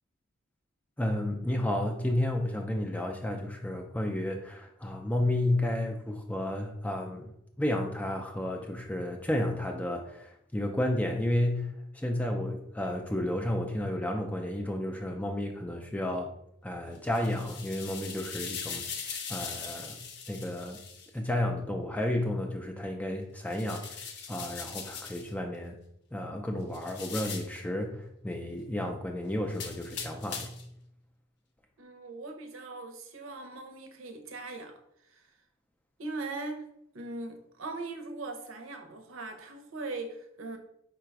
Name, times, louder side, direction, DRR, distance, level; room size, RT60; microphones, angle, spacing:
voice 1, 1.0-16.3 16.6-20.0 20.3-20.8 21.1-23.9 24.3-25.8 26.1-30.5, left 1 dB, 5° left, 0.3 m, -32 dB
sound 1, 17.0-21.1 23.5-25.3 26.7-27.6 29.5-30.7, left 6 dB, 55° left, 0.6 m, -40 dB
voice 2, 31.8-35.3 36.0-36.7 36.9-40.6, right 3 dB, 85° right, 0.7 m, -40 dB
4.7 x 2.3 x 4.6 m
head